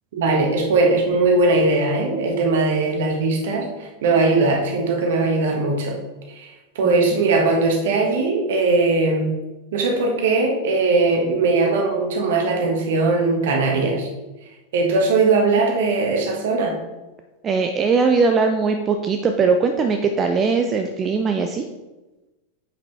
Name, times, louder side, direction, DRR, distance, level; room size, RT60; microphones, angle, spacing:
voice 1, 0.1-6.0 6.3-6.5 6.7-9.3 9.7-14.1 14.7-16.8, right 3 dB, 55° right, 1 dB, 1.5 m, -19 dB
voice 2, 17.4-21.7, right 4 dB, 25° right, 6 dB, 0.5 m, -20 dB
8.1 x 4.9 x 3.5 m, 1.1 s
figure-of-eight pair, 90°, 0 cm